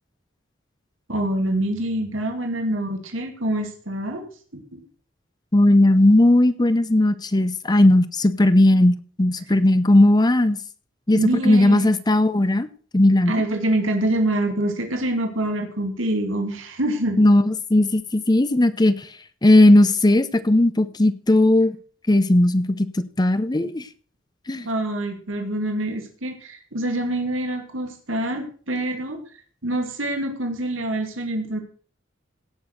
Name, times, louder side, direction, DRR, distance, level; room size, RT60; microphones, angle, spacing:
voice 1, 1.1-4.2 4.5-4.8 11.1-11.9 13.3-17.2 24.6-29.2 29.6-31.6, right 1 dB, 85° right, 4 dB, 2.4 m, -25 dB
voice 2, 5.5-10.6 11.1-12.7 12.9-13.3 17.2-19.1 19.4-21.8 22.1-23.8 24.5-24.7, left 1 dB, 20° left, 13 dB, 0.7 m, -17 dB
17.0 x 6.3 x 6.4 m, 0.43 s
head